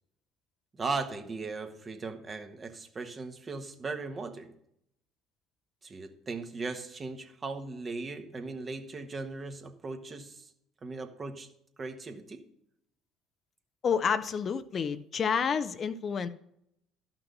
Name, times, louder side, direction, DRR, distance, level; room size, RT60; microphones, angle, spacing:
voice 1, 0.7-4.5 5.8-10.5 10.8-11.5 11.8-12.4, right 3 dB, 35° right, 1.3 m, -38 dB
voice 2, 13.8-16.3, left 6 dB, 45° left, 0.6 m, -29 dB
12.5 x 6.0 x 5.4 m
hypercardioid pair, 60°, 0 cm